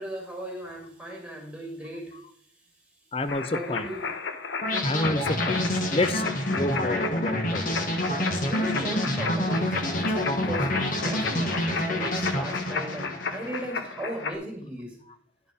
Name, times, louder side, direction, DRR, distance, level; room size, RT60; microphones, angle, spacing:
voice 1, 0.0-2.2 3.5-4.0 8.0-15.0, right 1 dB, 5° right, 2.5 m, -37 dB
voice 2, 3.1-3.9 4.8-5.7 5.9-7.6, left 2 dB, 30° left, 0.6 m, -29 dB
sound 1, 3.3-14.4, left 5 dB, 85° left, 0.9 m, -34 dB
sound 2, 4.6-13.7, left 1 dB, 45° left, 1.4 m, -27 dB
11.0 x 4.5 x 5.4 m
head